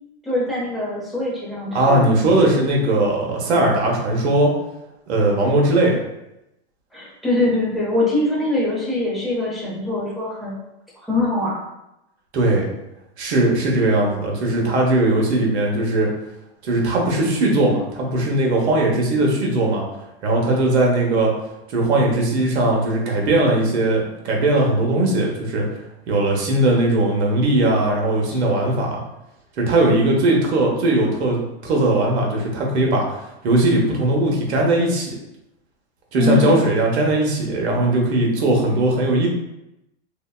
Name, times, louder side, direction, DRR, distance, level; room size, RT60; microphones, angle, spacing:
voice 1, 0.2-2.0 6.9-10.6 11.0-11.7 28.3-28.4 36.2-36.6, left 2 dB, ahead, -6 dB, 0.6 m, -23 dB
voice 2, 1.7-4.5 5.1-6.0 12.3-12.7 13.2-16.1 16.6-19.8 20.2-21.3 21.7-25.7 26.1-29.0 29.6-35.1 36.1-39.3, right 2 dB, 80° right, -1 dB, 0.9 m, -19 dB
2.7 x 2.1 x 2.2 m, 0.88 s
hypercardioid pair, 130°, 33 cm